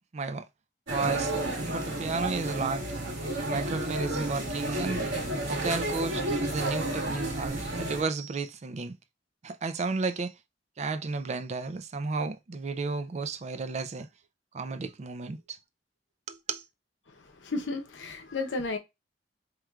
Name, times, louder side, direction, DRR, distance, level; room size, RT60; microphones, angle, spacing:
voice 1, 0.1-0.5 0.9-1.3 1.6-2.8 3.4-5.1 5.5-8.9 9.4-10.4 10.8-14.1 14.5-15.6 16.3-16.6, right 4 dB, 40° right, 0.4 m, -33 dB
sound 1, 0.9-8.0, right 1 dB, 80° right, 1.6 m, -31 dB
voice 2, 17.4-18.8, left 3 dB, 90° left, 0.8 m, -32 dB
4.6 x 3.1 x 2.3 m
head